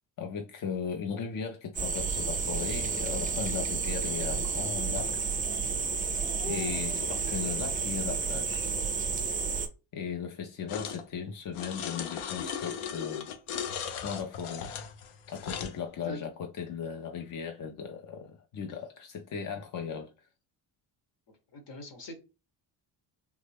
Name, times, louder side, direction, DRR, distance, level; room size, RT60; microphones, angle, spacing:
voice 1, 0.2-5.2 6.4-8.7 9.9-13.3 14.0-14.7 15.3-20.1, left 7 dB, 40° left, 0.5 m, -37 dB
sound 1, 1.7-9.7, right 5 dB, 20° right, 0.4 m, -31 dB
voice 2, 6.7-7.1 16.0-16.2 21.3-22.2, left 1 dB, 55° left, 1.2 m, -44 dB
sound 2, 10.7-11.0 11.5-15.8, left 8 dB, 80° left, 0.7 m, -37 dB
3.4 x 2.0 x 3.3 m
cardioid pair, 105°, 49 cm